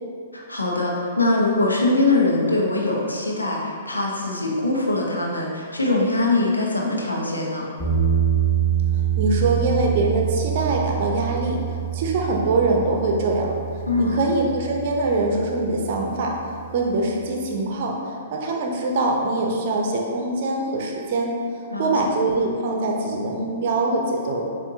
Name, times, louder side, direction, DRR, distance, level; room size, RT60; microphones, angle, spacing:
voice 1, 0.3-7.7 13.9-14.2 21.7-21.9, left 2 dB, 85° left, -2 dB, 0.8 m, -22 dB
sound 1, 7.8-16.7, right 9 dB, 20° left, 1.2 m, -26 dB
voice 2, 9.2-11.6 11.9-13.5 14.0-16.3 16.7-21.3 21.8-24.4, right 2 dB, 50° right, 0 dB, 0.7 m, -23 dB
6.9 x 2.6 x 2.7 m, 2.3 s
figure-of-eight pair, 115°, 0 cm